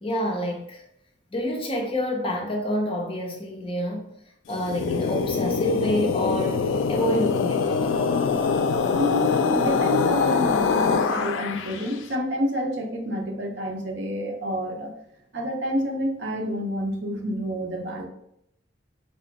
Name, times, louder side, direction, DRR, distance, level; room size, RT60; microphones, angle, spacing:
voice 1, 0.0-0.8 1.3-4.1 4.5-7.9, equal, 30° left, 0.6 m, -28 dB
sound 1, 4.5-11.9, left 5 dB, 90° left, 0.3 m, -24 dB
voice 2, 8.9-14.9 15.3-18.1, equal, 70° right, 0.6 m, -28 dB
3.4 x 2.2 x 3.9 m
head